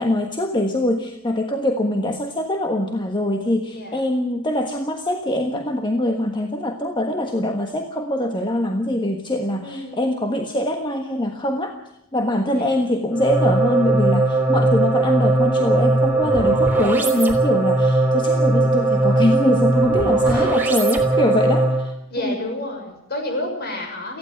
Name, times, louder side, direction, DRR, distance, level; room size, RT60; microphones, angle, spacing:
voice 1, 0.0-11.8 12.1-21.9 22.2-22.3, left 1 dB, 20° left, 4 dB, 1.4 m, -23 dB
voice 2, 3.7-4.1 9.6-10.1 12.5-12.8 18.3-18.7 20.2-20.6 22.1-24.2, left 1 dB, 50° left, 3 dB, 6.5 m, -30 dB
sound 1, 13.1-21.9, right 2 dB, 10° right, 3.3 m, -19 dB
19.0 x 15.0 x 9.3 m, 0.78 s
head